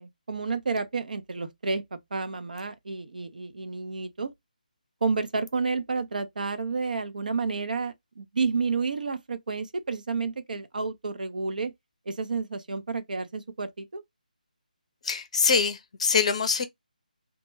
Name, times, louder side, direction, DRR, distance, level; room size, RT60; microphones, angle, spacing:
voice 1, 0.0-4.3 5.0-11.7 12.1-14.0, right 4 dB, 65° right, 0.5 m, -30 dB
voice 2, 15.0-16.6, left 5 dB, 45° left, 0.5 m, -24 dB
2.1 x 2.1 x 3.0 m
figure-of-eight pair, 155°, 5 cm